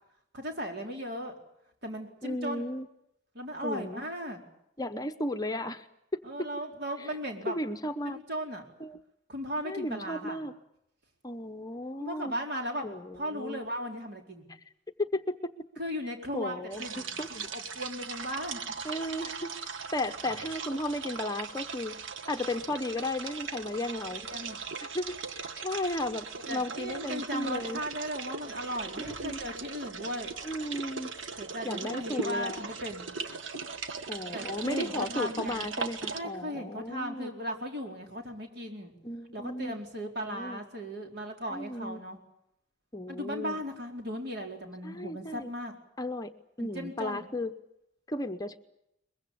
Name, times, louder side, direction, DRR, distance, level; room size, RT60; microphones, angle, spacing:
voice 1, 0.3-1.3 1.8-2.6 3.3-4.4 6.2-7.6 8.1-8.6 9.3-10.4 12.0-12.9 13.1-14.4 15.8-18.6 24.2-24.6 26.5-30.3 31.4-33.0 34.3-35.7 36.1-38.9 39.3-42.2 43.1-45.7 46.6-47.3, equal, 60° right, 2 dB, 4.6 m, -37 dB
voice 2, 2.2-2.9 3.6-4.0 4.8-5.9 6.4-6.5 7.0-7.1 7.5-8.2 8.8-9.0 9.6-10.5 11.2-12.3 12.8-13.6 15.0-15.5 16.3-17.3 18.8-22.0 22.3-24.2 24.8-27.8 29.0-29.4 30.4-31.1 31.6-32.6 33.8-37.3 39.0-39.8 40.2-40.6 41.5-42.0 42.9-43.6 44.8-45.5 46.0-46.3 46.6-47.5 48.1-48.6, left 1 dB, 20° left, 7 dB, 0.9 m, -35 dB
sound 1, 16.7-36.2, right 5 dB, 85° right, 1.4 m, -39 dB
23.0 x 22.0 x 8.6 m, 0.80 s
head